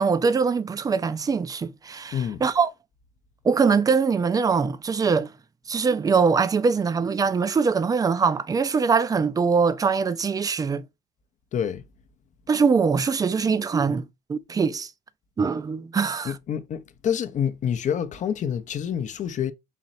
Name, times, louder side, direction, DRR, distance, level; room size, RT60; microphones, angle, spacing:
voice 1, 0.0-2.7 3.4-5.3 5.7-10.8 12.5-14.9 15.4-16.3, right 5 dB, 20° right, 0.4 m, -22 dB
voice 2, 11.5-11.8 16.2-19.5, left 8 dB, 45° left, 0.6 m, -27 dB
4.2 x 3.0 x 2.6 m
cardioid pair, 110°, 17 cm